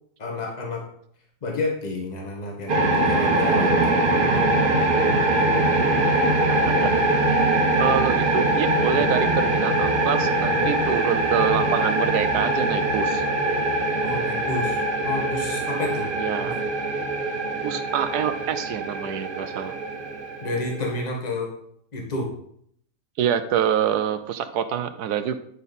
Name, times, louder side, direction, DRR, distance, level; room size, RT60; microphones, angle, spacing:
voice 1, 0.2-0.8 1.4-5.2 8.9-9.0 10.5-10.8 14.0-16.1 16.4-16.5 20.4-21.5 21.9-22.4, left 2 dB, 25° left, 0 dB, 1.5 m, -31 dB
sound 1, 2.7-21.0, right 2 dB, 35° right, 1.1 m, -22 dB
voice 2, 6.5-6.9 7.8-13.2 16.2-16.6 17.6-19.7 23.2-25.4, right 9 dB, 80° right, 10 dB, 1.1 m, -26 dB
10.0 x 5.3 x 4.1 m, 0.68 s
omnidirectional pair, 1.7 m